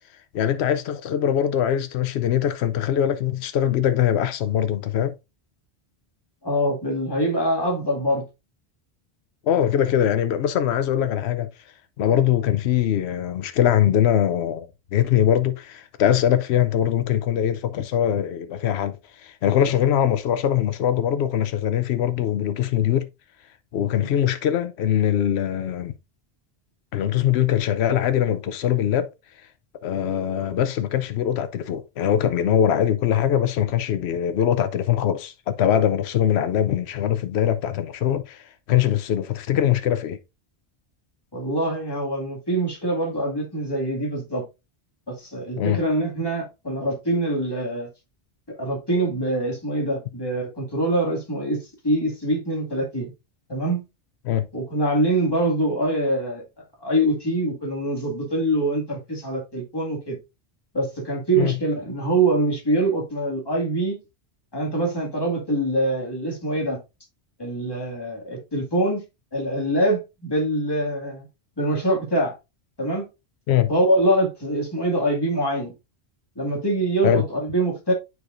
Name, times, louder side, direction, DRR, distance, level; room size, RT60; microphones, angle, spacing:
voice 1, 0.3-5.1 9.4-11.5 12.0-14.7 14.9-23.1 23.7-25.9 26.9-29.1 29.8-40.2 45.6-45.8 54.2-54.5 61.4-61.5 73.5-73.7 77.0-77.2, left 10 dB, 80° left, 0.9 m, -22 dB
voice 2, 6.4-8.3 12.1-12.2 24.0-24.1 41.3-44.4 45.1-47.9 48.5-51.6 51.8-53.1 53.5-53.8 54.5-56.4 56.8-60.2 60.7-64.0 64.5-66.8 67.4-69.0 69.3-71.3 71.6-72.3 72.8-73.1 73.7-75.7 76.4-77.9, right 1 dB, 20° left, 2.0 m, -24 dB
9.4 x 4.7 x 2.5 m
omnidirectional pair, 1.1 m